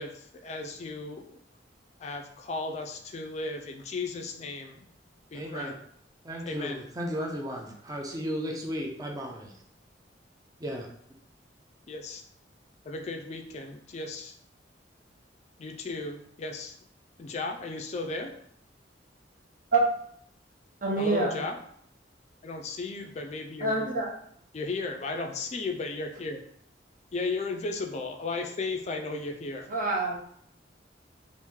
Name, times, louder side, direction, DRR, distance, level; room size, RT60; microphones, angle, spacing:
voice 1, 0.0-1.3 2.0-4.8 5.3-5.7 6.5-6.8 11.9-12.2 12.9-14.3 15.6-16.8 17.2-18.3 21.0-21.5 22.4-23.9 24.5-26.4 27.1-29.7, left 3 dB, 40° left, 3 dB, 0.4 m, -35 dB
voice 2, 5.3-5.7 6.2-9.5 10.6-10.9, equal, 20° right, 0 dB, 0.5 m, -34 dB
voice 3, 20.8-21.4 23.6-24.1 29.7-30.2, right 3 dB, 50° right, -2 dB, 0.9 m, -26 dB
3.0 x 2.5 x 3.5 m, 0.67 s
head